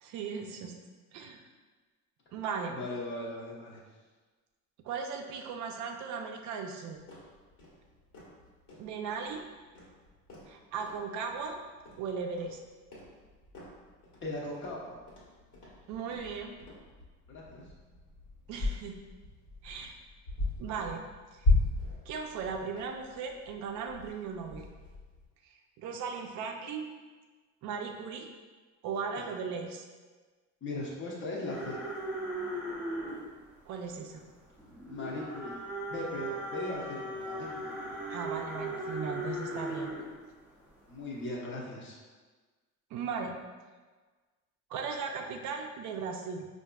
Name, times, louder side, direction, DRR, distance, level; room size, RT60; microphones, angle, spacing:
voice 1, 0.0-0.7 1.1-1.4 2.3-2.7 4.8-7.0 8.8-9.4 10.5-11.6 12.0-12.6 15.9-16.5 18.5-19.0 19.6-20.0 20.6-21.0 21.3-21.5 22.1-24.7 25.4-26.8 27.6-28.3 28.8-29.9 33.7-34.2 38.1-39.9 42.9-43.3 44.7-46.5, right 5 dB, 60° right, 3 dB, 0.5 m, -37 dB
voice 2, 2.7-3.8 14.2-15.0 17.3-17.6 29.2-29.3 30.6-31.8 34.9-35.6 35.9-37.8 40.9-42.0, left 2 dB, 35° left, -3 dB, 0.8 m, -38 dB
sound 1, 7.0-25.2, left 2 dB, 75° left, 1.3 m, -37 dB
sound 2, 31.5-40.1 40.6-40.9 41.2-41.3, right 1 dB, 5° right, 0.6 m, -38 dB
4.6 x 2.5 x 2.2 m, 1.4 s
cardioid pair, 140°, 32 cm